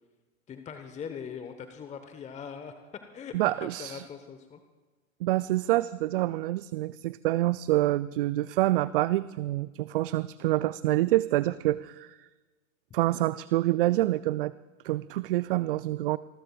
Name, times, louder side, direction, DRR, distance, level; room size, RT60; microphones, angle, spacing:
voice 1, 0.5-2.7 3.1-4.6, left 7 dB, 15° left, 7 dB, 1.1 m, -41 dB
voice 2, 3.3-4.0 5.2-12.2 12.9-14.5 14.8-16.2, right 16 dB, 45° right, 18 dB, 0.4 m, -27 dB
26.5 x 20.5 x 2.4 m, 1.2 s
figure-of-eight pair, 100°, 39 cm